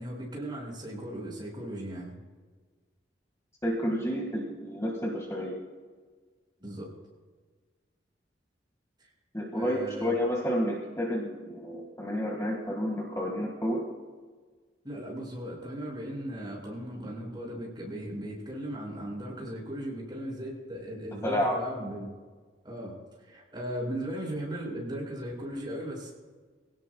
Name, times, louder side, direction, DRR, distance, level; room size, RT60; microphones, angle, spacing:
voice 1, 0.0-2.1 6.6-6.9 9.0-9.1 9.5-10.2 14.8-22.1 22.6-26.1, right 1 dB, 25° right, -3 dB, 5.6 m, -37 dB
voice 2, 3.6-5.6 9.3-13.8 21.2-21.6, equal, 15° left, 0 dB, 1.8 m, -30 dB
24.0 x 17.0 x 2.3 m, 1.5 s
head